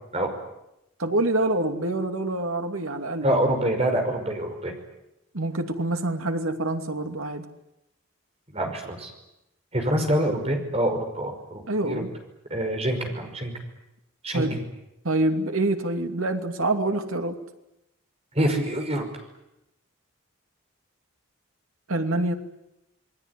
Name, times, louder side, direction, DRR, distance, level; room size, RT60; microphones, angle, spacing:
voice 1, 1.0-3.4 5.3-7.5 11.7-12.1 14.3-14.6 15.0-17.4 21.9-22.3, right 2 dB, 90° right, 6 dB, 2.7 m, -26 dB
voice 2, 3.2-4.8 8.5-9.1 9.7-12.0 12.5-13.5 14.2-14.6 18.4-19.1, right 1 dB, 30° right, 4 dB, 5.5 m, -26 dB
28.0 x 21.5 x 9.9 m, 0.88 s
head